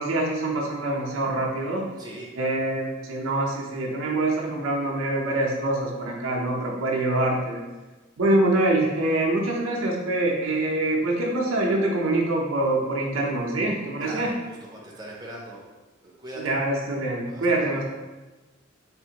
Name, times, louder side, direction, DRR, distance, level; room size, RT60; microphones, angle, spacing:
voice 1, 0.0-1.8 2.3-7.6 8.2-14.3 16.4-17.8, right 2 dB, 80° right, -2 dB, 0.6 m, -25 dB
voice 2, 2.0-2.3 14.0-15.6 16.0-16.6 17.2-17.8, right 1 dB, 20° right, -4 dB, 0.5 m, -40 dB
3.5 x 2.5 x 2.8 m, 1.2 s
head